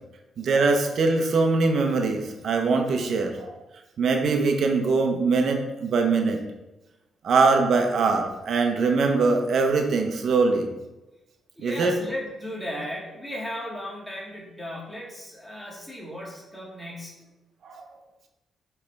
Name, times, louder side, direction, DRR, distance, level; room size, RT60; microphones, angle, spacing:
voice 1, 0.4-3.5 4.0-6.4 7.2-10.7 11.6-12.0 17.6-17.8, right 4 dB, 65° right, 4 dB, 0.9 m, -22 dB
voice 2, 11.6-17.2, left 1 dB, 10° left, -4 dB, 1.9 m, -36 dB
8.7 x 3.5 x 3.5 m, 1.0 s
supercardioid pair, 60°, 0 cm